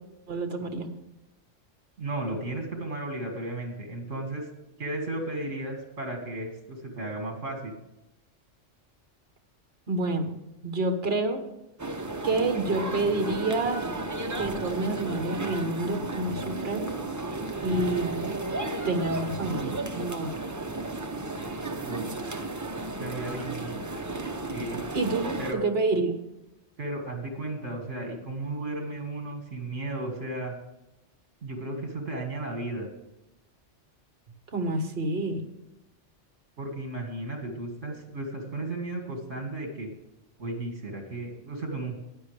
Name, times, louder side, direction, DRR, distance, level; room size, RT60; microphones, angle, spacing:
voice 1, 0.3-0.9 9.9-10.3 10.6-11.4 12.2-13.9 14.4-16.9 17.6-18.2 18.8-20.3 24.9-26.2 34.5-35.4, right 2 dB, 50° right, 6 dB, 1.5 m, -28 dB
voice 2, 2.0-4.5 4.8-7.8 21.8-22.0 23.0-23.7 24.5-24.8 25.4-25.7 26.8-30.5 31.4-32.9 36.6-39.9 40.4-42.0, right 2 dB, 65° right, 3 dB, 2.4 m, -34 dB
sound 1, 11.8-25.5, right 2 dB, 20° right, 0.5 m, -33 dB
15.5 x 9.8 x 3.4 m, 0.94 s
omnidirectional pair, 1.3 m